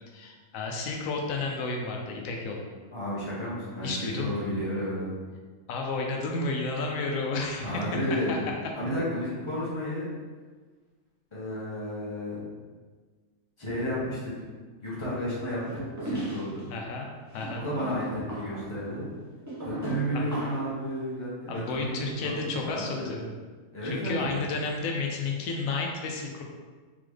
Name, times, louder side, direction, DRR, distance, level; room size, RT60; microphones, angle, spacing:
voice 1, 0.1-2.7 3.8-4.4 5.7-8.4 16.7-17.7 20.1-20.2 21.5-23.3 23.8-26.4, left 3 dB, 90° left, 1 dB, 1.0 m, -32 dB
voice 2, 2.9-5.1 7.6-8.4 8.7-10.1 11.3-12.4 13.6-14.3 14.8-16.7 17.5-19.1 19.6-22.0 22.2-22.3 22.6-23.2 23.7-24.3, equal, 20° left, -8 dB, 1.3 m, -32 dB
sound 1, 15.6-16.7 17.3-20.8, right 2 dB, 15° right, 0.9 m, -37 dB
3.9 x 3.7 x 3.2 m, 1.4 s
omnidirectional pair, 1.4 m